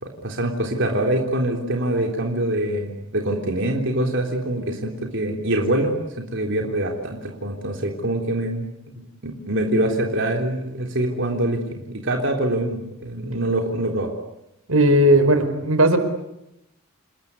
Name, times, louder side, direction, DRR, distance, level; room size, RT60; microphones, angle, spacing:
voice 1, 0.0-8.7 9.0-14.1, right 1 dB, 60° right, 1 dB, 3.6 m, -24 dB
voice 2, 14.7-16.0, right 1 dB, 85° right, 9 dB, 4.5 m, -16 dB
29.0 x 21.0 x 9.7 m, 0.86 s
head